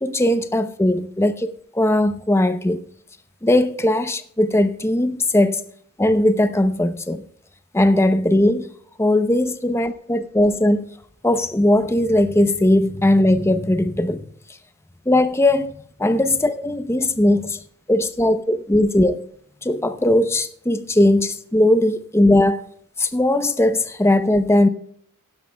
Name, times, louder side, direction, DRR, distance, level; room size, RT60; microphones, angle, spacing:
voice 1, 0.0-2.8 3.4-5.6 6.0-7.2 7.7-8.7 9.0-10.9 11.2-14.3 15.1-15.7 16.0-17.6 17.9-19.2 19.6-22.6 23.0-24.7, left 1 dB, 10° left, 0.7 m, -18 dB
16.0 x 12.0 x 2.3 m
head